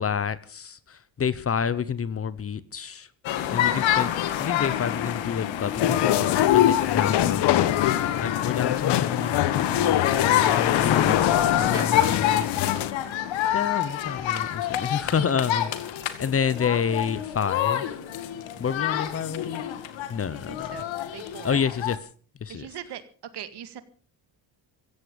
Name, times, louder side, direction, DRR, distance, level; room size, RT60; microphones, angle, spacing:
voice 1, 0.0-3.1 3.5-12.5 13.5-18.0 18.6-19.6 20.1-20.8 21.4-22.0 22.4-22.7, left 7 dB, 30° left, 1.0 m, -29 dB
sound 1, 3.2-22.0, left 11 dB, 80° left, 2.2 m, -27 dB
voice 2, 3.6-4.1 11.4-12.4 20.3-21.6 22.5-23.0 23.3-23.8, right 10 dB, 60° right, 2.1 m, -41 dB
sound 2, 5.8-12.9, left 12 dB, 60° left, 1.2 m, -24 dB
16.0 x 15.0 x 5.3 m
cardioid pair, 145°, 45 cm